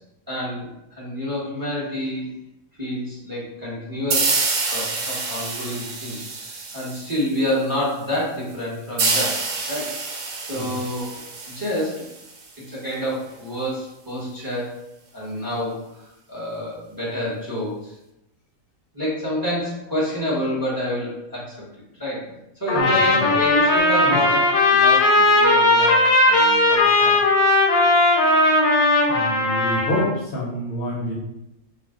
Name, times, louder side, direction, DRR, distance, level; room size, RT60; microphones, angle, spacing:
voice 1, 0.3-2.3 2.8-4.3 4.7-6.2 6.7-10.0 10.5-11.2 11.5-12.1 12.6-14.8 15.1-18.0 18.9-21.6 22.0-22.2 22.6-27.2 28.4-28.5, equal, 20° right, -8 dB, 0.7 m, -28 dB
sound 1, 4.1-7.5 9.0-12.5, right 3 dB, 70° right, 0.9 m, -27 dB
Trumpet, 22.7-30.1, left 2 dB, 85° left, 1.1 m, -17 dB
voice 2, 22.7-23.3 24.0-24.2 29.1-31.1, left 1 dB, 55° left, -5 dB, 0.7 m, -27 dB
2.5 x 2.1 x 3.5 m, 0.86 s
omnidirectional pair, 1.4 m